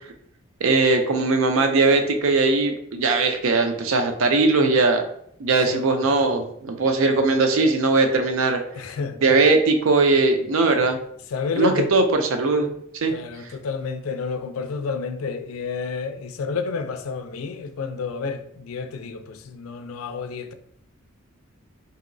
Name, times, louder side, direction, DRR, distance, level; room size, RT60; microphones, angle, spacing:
voice 1, 0.6-5.0 5.4-8.6 9.2-11.0 11.6-12.7 12.9-13.1, right 3 dB, 80° right, 0.5 m, -19 dB
voice 2, 8.7-9.2 11.3-12.0 13.1-20.5, left 4 dB, 90° left, 0.4 m, -30 dB
3.0 x 2.8 x 2.6 m
head